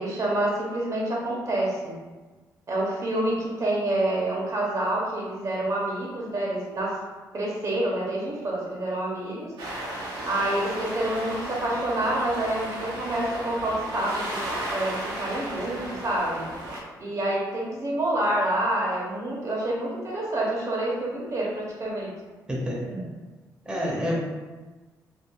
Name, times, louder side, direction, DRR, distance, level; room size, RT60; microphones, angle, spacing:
voice 1, 0.0-1.9 2.7-7.0 7.3-9.5 10.3-14.5 14.7-16.4 17.0-22.1 22.8-23.1, right 1 dB, 45° right, -3 dB, 0.7 m, -27 dB
sound 1, 9.6-16.8, right 1 dB, 85° right, 0.6 m, -34 dB
voice 2, 23.7-24.2, equal, 10° right, -4 dB, 0.7 m, -27 dB
2.9 x 2.3 x 2.3 m, 1.3 s
cardioid pair, 80°, 7 cm